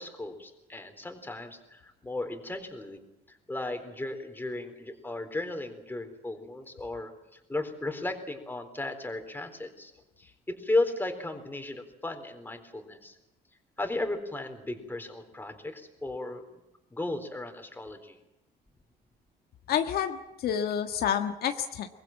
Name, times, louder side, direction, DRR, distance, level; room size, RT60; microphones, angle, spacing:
voice 1, 0.0-3.0 3.3-9.9 10.2-13.2 13.8-16.4 16.9-18.2, left 2 dB, 10° left, 6 dB, 3.9 m, -35 dB
voice 2, 19.7-21.9, left 9 dB, 65° left, 6 dB, 1.5 m, -29 dB
23.5 x 20.0 x 9.1 m, 0.92 s
cardioid pair, 110°, 17 cm